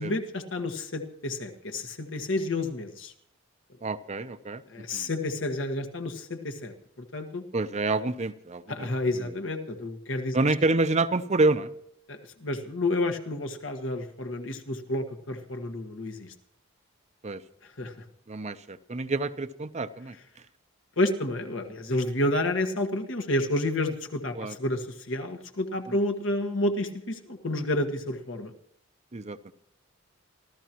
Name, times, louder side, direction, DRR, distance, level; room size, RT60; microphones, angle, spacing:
voice 1, 0.0-3.1 4.7-6.7 7.1-7.4 8.7-10.4 12.1-16.3 17.8-17.9 21.0-28.5, left 1 dB, 70° left, 5 dB, 1.5 m, -30 dB
voice 2, 3.8-4.6 4.9-5.1 7.5-9.3 10.3-11.7 17.2-17.4 18.3-20.2 24.3-24.6 25.9-26.0 29.1-29.5, right 2 dB, 35° right, 11 dB, 0.6 m, -28 dB
26.5 x 13.5 x 3.0 m, 0.71 s
head